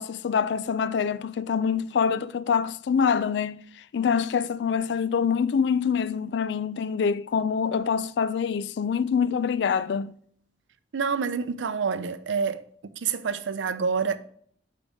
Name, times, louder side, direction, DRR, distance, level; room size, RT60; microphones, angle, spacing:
voice 1, 0.0-3.6 3.9-10.1, left 6 dB, 65° left, 0.3 m, -25 dB
voice 2, 10.9-12.6 13.0-14.2, right 5 dB, 80° right, 0.5 m, -27 dB
5.1 x 4.9 x 5.2 m
head